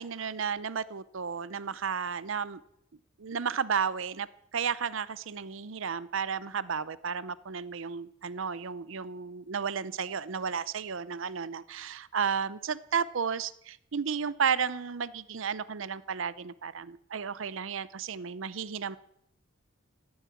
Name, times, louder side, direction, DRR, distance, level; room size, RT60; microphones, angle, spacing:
voice 1, 0.0-2.6 3.2-4.3 4.5-19.0, right 6 dB, 70° right, 17 dB, 0.6 m, -33 dB
17.0 x 9.6 x 8.5 m, 0.75 s
head